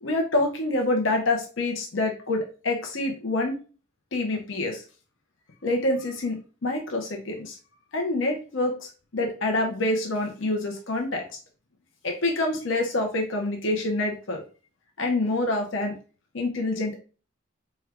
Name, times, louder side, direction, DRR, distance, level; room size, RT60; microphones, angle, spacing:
voice 1, 0.0-3.5 4.1-4.8 5.6-7.6 7.9-11.2 12.0-14.4 15.0-15.9 16.3-17.0, left 2 dB, 75° left, 2 dB, 0.9 m, -26 dB
4.4 x 2.3 x 3.5 m, 0.35 s
head